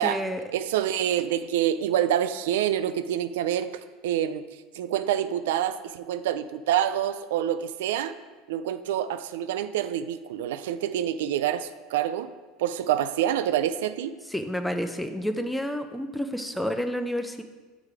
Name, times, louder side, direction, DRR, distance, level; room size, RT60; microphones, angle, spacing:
voice 1, 0.0-0.4 14.3-17.4, equal, 5° left, 7 dB, 0.6 m, -30 dB
voice 2, 0.5-3.7 4.0-4.4 4.7-8.2 8.5-12.3 12.6-14.2, right 11 dB, 85° right, 12 dB, 0.3 m, -27 dB
7.4 x 4.9 x 4.7 m, 1.3 s
supercardioid pair, 120°, 0 cm